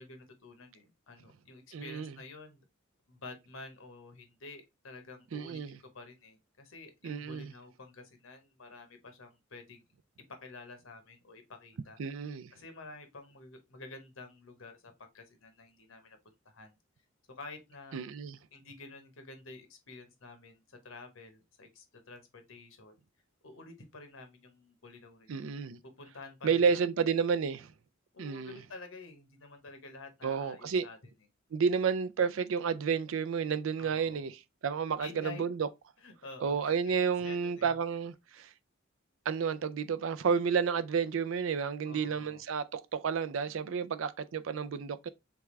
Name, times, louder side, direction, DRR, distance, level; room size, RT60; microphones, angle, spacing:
voice 1, 0.0-2.6 3.1-5.6 5.9-9.8 10.4-12.0 12.5-16.2 16.4-16.8 17.4-18.0 18.5-23.0 23.4-25.5 26.0-26.8 28.1-31.1 33.8-34.3 35.0-35.4 36.0-37.7 41.8-42.4, left 3 dB, 80° left, 1.1 m, -50 dB
voice 2, 1.7-2.1 5.3-5.8 7.0-7.5 12.0-12.5 17.9-18.4 25.3-25.8 26.4-27.7 28.2-28.6 30.2-30.8 31.5-35.7 36.4-38.5 39.3-45.1, right 6 dB, 70° right, 0.4 m, -31 dB
3.5 x 3.4 x 3.1 m
head